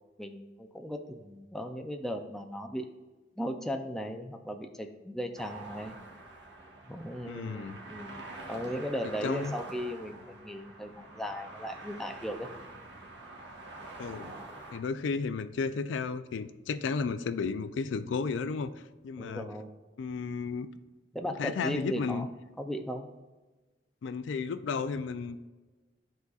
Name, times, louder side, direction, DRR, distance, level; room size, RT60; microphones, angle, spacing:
voice 1, 0.2-2.9 3.4-6.0 6.9-12.5 19.2-19.7 21.1-22.2 22.6-23.1, equal, ahead, 4 dB, 0.4 m, -37 dB
sound 1, 5.4-14.8, right 2 dB, 70° right, 1.1 m, -46 dB
voice 2, 7.3-7.8 9.2-9.5 14.0-14.3 14.7-19.5 20.0-20.7 21.4-22.3 24.0-25.4, left 5 dB, 75° left, 11 dB, 0.4 m, -33 dB
12.0 x 4.0 x 2.4 m, 1.2 s
head